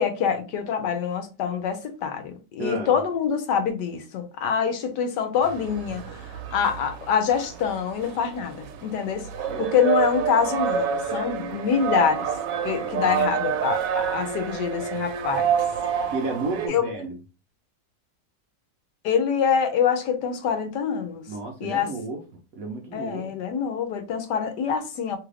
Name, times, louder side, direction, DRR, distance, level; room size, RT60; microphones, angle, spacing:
voice 1, 0.0-9.3 9.6-12.3 12.6-15.5 16.7-16.9 19.0-21.3 21.6-21.9 22.9-25.2, left 7 dB, 75° left, 1.2 m, -25 dB
voice 2, 2.6-2.9 9.5-9.6 13.0-13.3 16.1-17.1 21.3-22.2 22.6-23.3, right 3 dB, 70° right, 0.9 m, -32 dB
sound 1, 5.4-16.7, right 7 dB, 90° right, 1.3 m, -28 dB
3.1 x 2.4 x 3.2 m
omnidirectional pair, 1.9 m